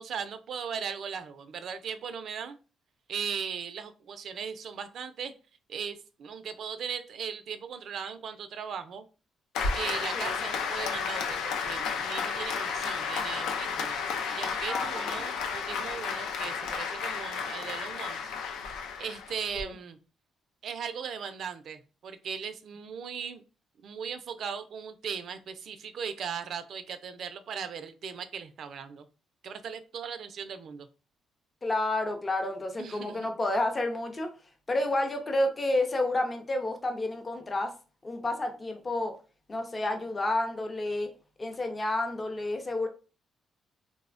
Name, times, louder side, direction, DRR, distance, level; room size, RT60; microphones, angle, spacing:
voice 1, 0.0-2.6 3.1-5.3 5.7-9.0 9.7-13.9 14.3-18.3 19.0-20.0 20.6-23.4 23.8-29.1 29.4-30.9 32.8-33.3, right 7 dB, 65° right, 0.3 m, -38 dB
Applause, 9.5-19.6, left 5 dB, 90° left, 0.4 m, -32 dB
voice 2, 14.7-15.1 19.5-19.7 31.6-34.3 34.7-37.8 38.0-39.2 39.5-41.1 41.4-42.9, left 2 dB, 25° left, 0.5 m, -30 dB
3.2 x 2.0 x 2.4 m
cardioid pair, 90°, 0 cm